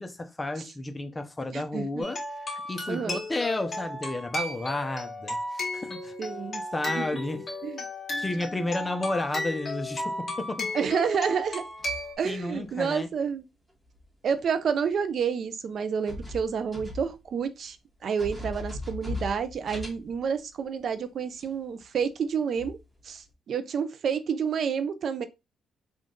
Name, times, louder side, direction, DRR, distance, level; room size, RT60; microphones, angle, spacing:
voice 1, 0.0-2.2 2.5-6.1 6.7-7.5 8.2-10.7 12.2-13.1, left 2 dB, 20° left, 0.6 m, -32 dB
voice 2, 1.5-2.1 2.9-3.2 6.2-6.6 6.9-7.1 7.6-7.8 10.7-11.7 12.2-13.5 14.2-17.8 18.0-22.8 23.0-25.3, right 6 dB, 55° right, 0.4 m, -29 dB
sound 1, 2.0-12.1, left 1 dB, 35° left, 1.5 m, -34 dB
sound 2, 11.0-12.7 13.9-14.0 14.9-15.0 15.9-17.4 17.7-17.8 18.2-20.6 21.4-21.5 21.9-22.1 22.5-23.3, left 2 dB, 5° right, 1.3 m, -39 dB
3.7 x 2.4 x 3.7 m
cardioid pair, 90°, 0 cm